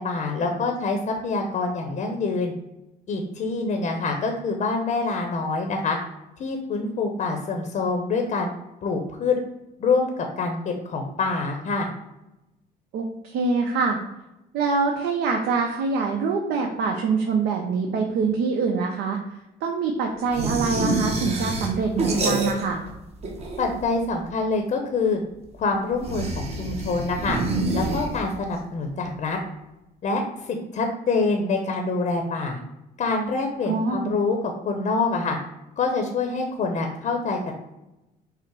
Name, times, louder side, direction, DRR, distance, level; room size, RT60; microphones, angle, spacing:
voice 1, 0.0-2.5 3.1-6.0 6.4-8.5 8.8-9.4 9.8-11.9 23.6-25.2 25.6-27.4 27.7-29.4 30.0-32.6 33.0-35.4 35.8-37.5, left 3 dB, 45° left, 3 dB, 0.7 m, -26 dB
voice 2, 12.9-14.0 14.5-19.2 19.6-22.8 33.7-34.1, right 4 dB, 75° right, 2 dB, 0.6 m, -24 dB
sound 1, 20.3-22.9 23.2-24.0 26.0-28.5, right 2 dB, 40° right, 1.0 m, -27 dB
5.6 x 2.0 x 4.6 m, 0.95 s
cardioid pair, 110°, 17 cm